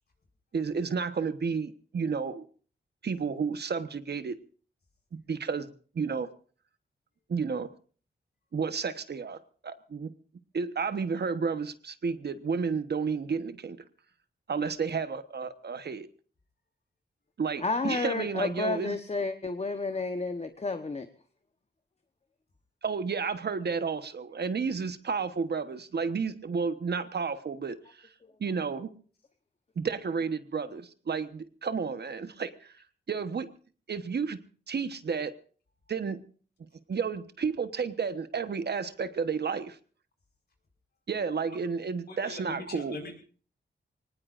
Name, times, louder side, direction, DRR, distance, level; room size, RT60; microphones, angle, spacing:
voice 1, 0.5-2.4 3.0-4.4 5.1-6.3 7.3-7.7 8.5-9.4 9.6-10.1 10.5-13.8 14.5-16.1 17.4-19.0 22.8-28.1 28.4-28.9 29.8-32.7 33.1-33.5 33.9-34.4 34.7-35.3 35.9-36.2 36.9-39.8 41.1-43.0, right 5 dB, 60° right, 1.2 m, -31 dB
voice 2, 17.6-21.1 28.2-28.3, left 3 dB, 35° left, 1.1 m, -31 dB
voice 3, 42.1-43.2, left 2 dB, 60° left, 5.3 m, -41 dB
24.5 x 19.0 x 2.6 m
wide cardioid pair, 100°, 19 cm